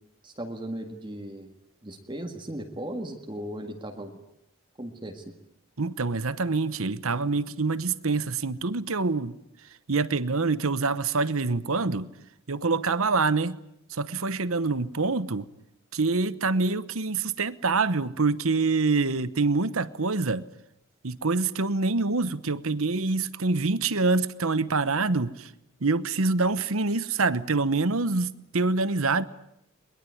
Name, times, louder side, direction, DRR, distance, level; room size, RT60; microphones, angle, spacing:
voice 1, 0.2-1.5 1.8-4.2 4.8-5.3, right 1 dB, 20° right, 1.8 m, -37 dB
voice 2, 5.8-9.4 9.9-12.1 12.5-13.6 13.9-15.5 15.9-20.4 21.0-25.5 25.8-29.2, right 3 dB, 70° right, 1.0 m, -26 dB
22.5 x 22.0 x 9.5 m
head